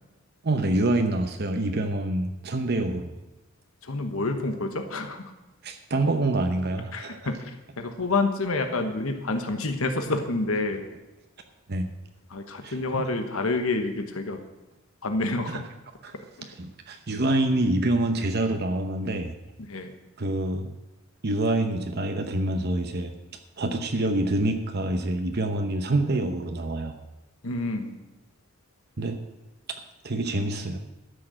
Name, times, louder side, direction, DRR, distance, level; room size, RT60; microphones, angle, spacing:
voice 1, 0.4-3.1 5.6-7.2 11.7-11.9 12.6-13.1 15.5-15.6 16.0-16.1 16.6-19.3 20.2-20.7 21.2-23.1 23.6-27.0 29.0-29.2 30.0-30.8, right 2 dB, 50° right, 6 dB, 0.8 m, -26 dB
voice 2, 3.8-5.3 6.9-10.8 12.3-14.4 15.0-15.7 19.6-19.9 27.4-27.9, left 2 dB, 75° left, 6 dB, 1.2 m, -28 dB
12.5 x 6.5 x 7.6 m, 1.0 s
head